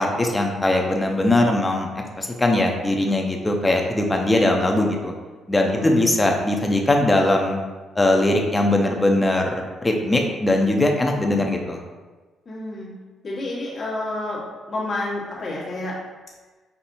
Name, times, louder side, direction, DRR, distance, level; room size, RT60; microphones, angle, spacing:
voice 1, 0.0-1.9 2.2-5.1 5.5-7.6 8.0-11.8, left 1 dB, 15° left, 2 dB, 0.6 m, -20 dB
voice 2, 5.6-6.2 12.4-16.0, left 2 dB, 40° left, -6 dB, 1.4 m, -30 dB
5.6 x 2.6 x 2.6 m, 1.3 s
cardioid pair, 90°, 0 cm